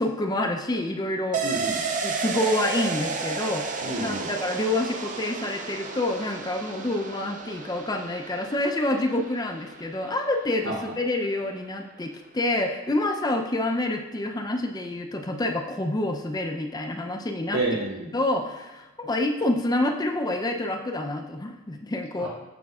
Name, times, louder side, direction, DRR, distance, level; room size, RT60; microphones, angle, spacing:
voice 1, 0.0-1.4 2.0-17.6 18.1-22.3, left 1 dB, 15° left, 3 dB, 0.4 m, -27 dB
sound 1, 1.3-10.7 11.0-11.1, right 4 dB, 35° right, 0.6 m, -33 dB
voice 2, 1.4-1.8 3.8-4.3 10.6-10.8 17.5-18.1 22.2-22.3, right 2 dB, 75° right, -6 dB, 2.6 m, -29 dB
14.0 x 5.1 x 2.4 m, 1.1 s
head